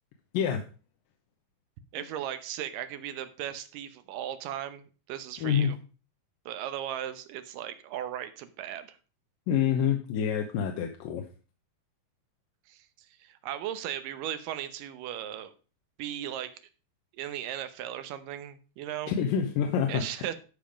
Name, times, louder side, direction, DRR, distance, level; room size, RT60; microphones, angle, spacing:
voice 1, 1.9-5.8 6.5-9.0 12.7-12.9 13.2-15.5 16.0-16.5 17.1-19.1 19.9-20.3, right 11 dB, 80° right, 11 dB, 2.5 m, -37 dB
voice 2, 5.4-5.8 9.5-11.3 19.1-20.0, left 8 dB, 90° left, 3 dB, 2.7 m, -27 dB
12.5 x 5.3 x 5.0 m, 0.35 s
omnidirectional pair, 3.9 m